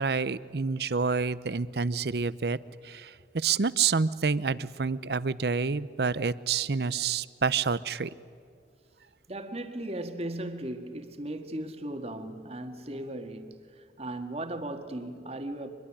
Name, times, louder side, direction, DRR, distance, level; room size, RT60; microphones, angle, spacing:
voice 1, 0.0-2.6 2.8-8.1, right 5 dB, 60° right, 0.7 m, -28 dB
voice 2, 9.3-15.7, right 1 dB, 35° right, 1.8 m, -37 dB
24.5 x 22.0 x 9.9 m
head